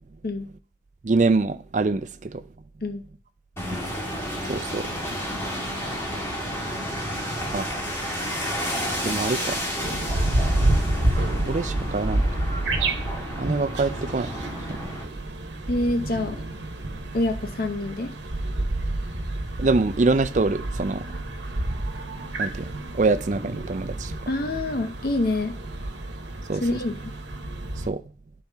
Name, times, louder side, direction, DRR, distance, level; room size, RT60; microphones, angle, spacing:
voice 1, 1.0-2.4 4.5-4.9 7.5-7.7 9.0-9.7 11.5-12.3 13.4-14.3 14.7-14.8 19.6-21.0 22.4-24.1 26.5-26.6 27.9-28.0, right 3 dB, 40° right, 0.4 m, -24 dB
sound 1, 3.6-15.0, equal, 15° left, 1.8 m, -31 dB
sound 2, 9.8-27.9, right 1 dB, 75° right, 1.1 m, -29 dB
voice 2, 15.7-16.4 17.1-18.1 24.3-25.5 26.5-27.0, left 2 dB, 50° left, 0.7 m, -26 dB
11.5 x 4.1 x 3.5 m
head